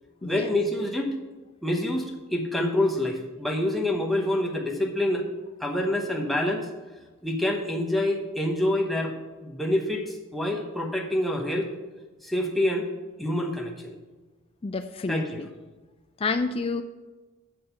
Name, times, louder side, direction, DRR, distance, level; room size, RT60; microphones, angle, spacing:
voice 1, 0.2-1.1 1.6-5.3 5.6-6.7 7.2-9.2 9.4-11.7 12.2-12.9 13.2-13.9 15.1-15.4, left 1 dB, ahead, 0 dB, 1.0 m, -27 dB
voice 2, 14.6-15.5 16.2-16.8, left 3 dB, 25° left, 7 dB, 0.3 m, -29 dB
7.7 x 6.4 x 6.8 m, 1.2 s
head